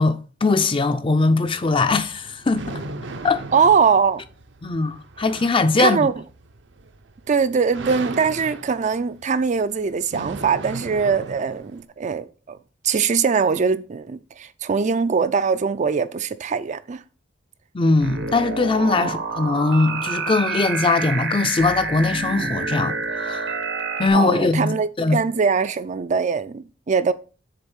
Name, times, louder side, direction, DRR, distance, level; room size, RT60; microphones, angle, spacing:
voice 1, 0.0-2.8 3.2-3.4 4.6-6.1 17.7-23.5 24.0-25.2, left 3 dB, 30° left, 0.5 m, -21 dB
sound 1, 1.4-11.8, right 3 dB, 70° right, 0.7 m, -37 dB
voice 2, 3.5-4.2 5.8-6.1 7.3-12.6 12.8-17.0 19.0-19.1 24.1-27.1, right 5 dB, 40° right, 0.4 m, -22 dB
sound 2, 18.0-24.1, right 4 dB, 85° right, 1.3 m, -28 dB
6.7 x 4.1 x 6.2 m
head